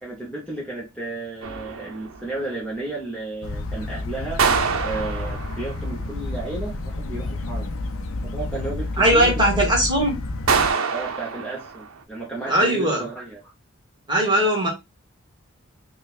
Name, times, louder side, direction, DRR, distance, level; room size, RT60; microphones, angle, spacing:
voice 1, 0.0-4.5 4.8-7.7 8.2-9.6 10.9-13.4, right 2 dB, 5° left, 0.9 m, -33 dB
sound 1, 1.4-2.3 4.4-5.9 10.5-12.0, right 5 dB, 85° right, 0.6 m, -25 dB
sound 2, 3.4-10.7, left 2 dB, 85° left, 0.5 m, -30 dB
voice 2, 9.0-10.2 12.5-13.0 14.1-14.7, right 1 dB, 20° right, 1.3 m, -19 dB
5.3 x 2.2 x 2.4 m
head